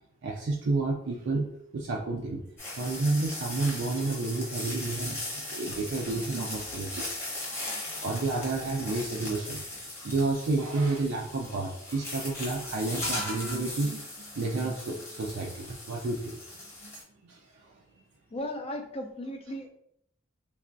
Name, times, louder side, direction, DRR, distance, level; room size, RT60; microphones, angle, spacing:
voice 1, 0.2-2.4 2.8-9.6 10.0-14.0 14.3-16.4 16.8-16.9 17.2-17.8, right 3 dB, 60° right, 0 dB, 0.4 m, -31 dB
sound 1, 2.6-17.0, left 1 dB, 10° left, 0.9 m, -38 dB
voice 2, 18.3-19.7, left 1 dB, 30° left, 3 dB, 0.4 m, -36 dB
3.3 x 2.3 x 2.5 m, 0.69 s
head